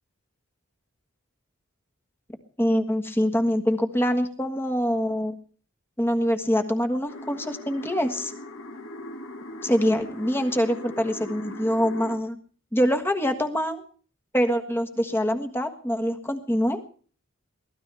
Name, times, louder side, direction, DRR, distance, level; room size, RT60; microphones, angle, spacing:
voice 1, 2.6-5.3 6.0-8.3 9.6-12.4 12.7-13.8 14.3-16.8, equal, 10° left, 6 dB, 1.5 m, -24 dB
sound 1, 7.1-12.2, left 1 dB, 65° left, 2.1 m, -40 dB
23.0 x 17.5 x 3.4 m, 0.43 s
head